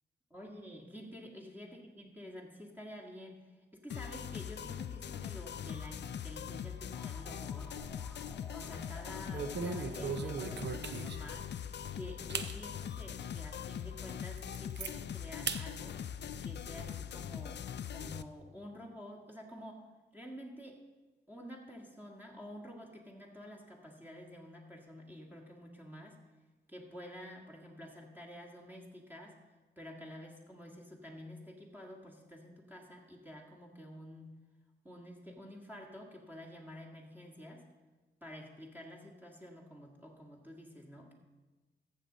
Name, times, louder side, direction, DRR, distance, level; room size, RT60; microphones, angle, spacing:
voice 1, 0.3-7.8 8.5-11.5 11.9-16.0 16.4-17.6 17.9-19.8 20.1-20.8 21.3-26.2 26.7-29.4 29.8-34.3 34.8-37.6 38.2-41.1, equal, 10° right, -1 dB, 1.8 m, -49 dB
sound 1, 3.9-18.2, left 9 dB, 60° left, 0.4 m, -42 dB
sound 2, 6.9-11.6, left 1 dB, 10° left, 1.9 m, -55 dB
sound 3, 7.5-8.2 8.5-8.8 9.3-11.4 11.8-11.9 12.3-12.5 13.1-13.2 13.7-13.8 14.1-14.9 15.5-15.6 16.0-16.9, right 5 dB, 60° right, 0.7 m, -39 dB
14.5 x 6.5 x 4.0 m, 1.3 s
cardioid pair, 45°, 20 cm